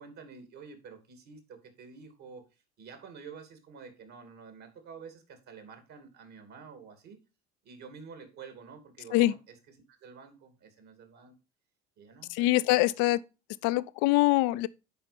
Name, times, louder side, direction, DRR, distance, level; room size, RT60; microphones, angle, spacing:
voice 1, 0.0-2.5 2.8-7.2 7.6-9.6 9.9-11.3 12.0-12.9, right 5 dB, 60° right, 2.8 m, -49 dB
voice 2, 12.3-13.2 13.6-14.7, left 18 dB, 70° left, 0.6 m, -24 dB
10.0 x 4.4 x 5.1 m
hypercardioid pair, 75°, 32 cm